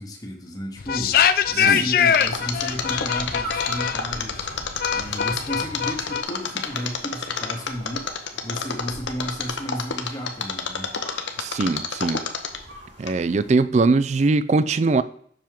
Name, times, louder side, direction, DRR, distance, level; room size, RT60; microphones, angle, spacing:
voice 1, 0.0-4.5 4.9-8.1 8.4-10.9, equal, 20° left, 0.9 m, -33 dB
sound 1, 0.8-6.2, left 8 dB, 50° left, 0.4 m, -23 dB
sound 2, 1.8-13.6, right 1 dB, 90° right, 3.5 m, -43 dB
Mechanisms, 2.1-12.7 13.1-13.2, left 6 dB, 75° left, 0.9 m, -28 dB
voice 2, 11.4-12.2 13.0-15.0, right 3 dB, 35° right, 0.3 m, -21 dB
7.5 x 6.0 x 3.6 m
head